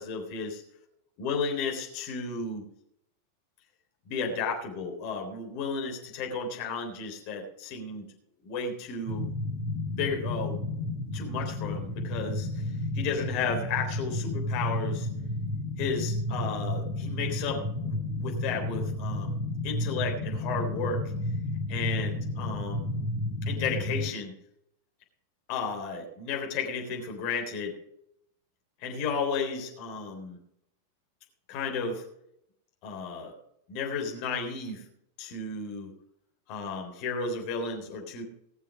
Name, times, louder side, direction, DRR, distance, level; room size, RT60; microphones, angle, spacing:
voice 1, 0.0-0.6 1.2-2.6 4.1-8.0 8.4-9.3 9.9-10.6 11.1-12.5 12.9-15.1 15.8-19.3 19.6-21.0 21.7-22.9 23.4-24.3 25.5-27.7 28.8-30.4 31.5-32.0 32.8-33.3 33.7-34.8 35.2-35.9 36.5-38.2, left 5 dB, 45° left, 1 dB, 3.7 m, -33 dB
sound 1, 9.1-24.1, left 1 dB, 20° right, 3.1 m, -32 dB
20.0 x 6.8 x 5.1 m, 0.75 s
figure-of-eight pair, 90°, 0 cm